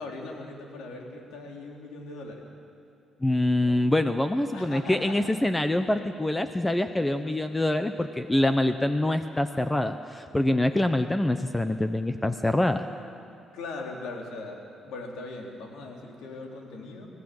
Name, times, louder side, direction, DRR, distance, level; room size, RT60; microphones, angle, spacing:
voice 1, 0.0-2.4 4.5-5.3 7.0-7.1 13.5-17.1, left 2 dB, 85° left, 0 dB, 3.8 m, -39 dB
voice 2, 3.2-12.8, left 1 dB, 10° left, 9 dB, 0.9 m, -25 dB
29.5 x 14.5 x 7.9 m, 2.6 s
cardioid pair, 90°, 0 cm